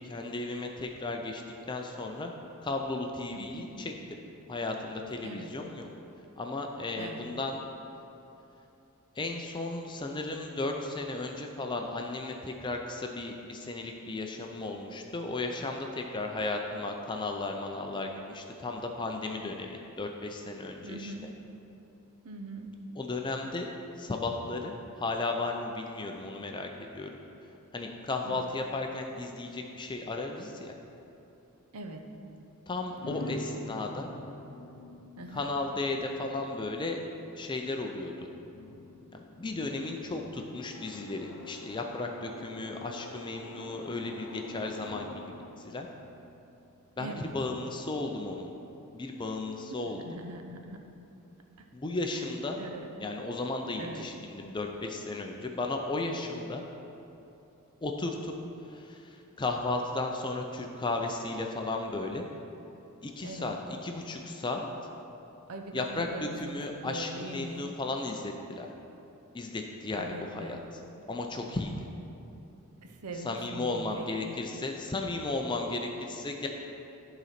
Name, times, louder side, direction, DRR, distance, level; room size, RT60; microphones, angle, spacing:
voice 1, 0.0-1.4 1.7-2.3 2.6-4.2 4.5-5.9 6.4-7.6 9.2-21.3 23.0-23.7 24.0-27.1 27.7-30.7 32.7-34.1 35.3-37.0 37.4-38.1 39.1-45.1 45.6-45.9 47.0-48.5 48.9-50.0 51.7-52.6 53.0-56.6 57.8-58.3 58.7-62.2 63.0-63.6 63.8-64.7 65.7-68.7 69.3-70.6 71.1-71.9 73.2-76.5, left 2 dB, 20° left, 3 dB, 0.4 m, -35 dB
voice 2, 3.3-3.7 5.2-5.5 7.0-7.3 20.8-21.3 22.2-22.7 28.2-28.4 31.7-32.0 35.2-35.6 47.0-47.4 49.7-50.8 52.1-52.7 53.8-54.1 63.2-63.5 65.5-67.7 69.9-70.7 72.8-74.4, right 2 dB, 85° right, 4 dB, 0.8 m, -42 dB
sound 1, 33.0-46.8, left 1 dB, 75° left, 0.6 m, -46 dB
11.0 x 4.0 x 5.8 m, 2.9 s
head